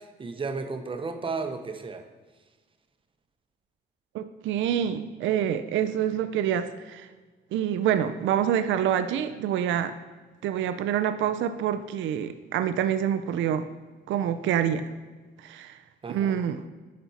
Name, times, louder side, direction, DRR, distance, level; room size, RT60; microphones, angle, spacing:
voice 1, 0.0-2.1 16.0-16.4, right 4 dB, 25° right, 7 dB, 0.7 m, -34 dB
voice 2, 4.1-7.1 7.5-9.9 10.4-13.7 14.1-14.9 15.4-15.8 16.1-16.6, right 9 dB, 75° right, 10 dB, 0.4 m, -26 dB
11.0 x 4.3 x 2.8 m, 1.3 s
cardioid pair, 90°, 20 cm